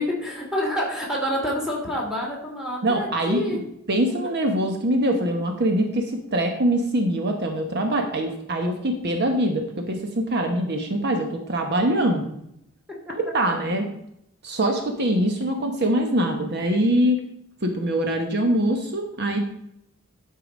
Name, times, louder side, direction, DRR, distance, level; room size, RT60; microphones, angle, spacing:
voice 1, 0.0-3.6, left 1 dB, 5° right, -3 dB, 2.5 m, -27 dB
voice 2, 2.8-3.6 3.9-12.3 13.1-13.8 14.4-17.2 17.6-19.4, right 1 dB, 55° right, 4 dB, 1.0 m, -23 dB
11.5 x 4.7 x 5.1 m, 0.79 s
head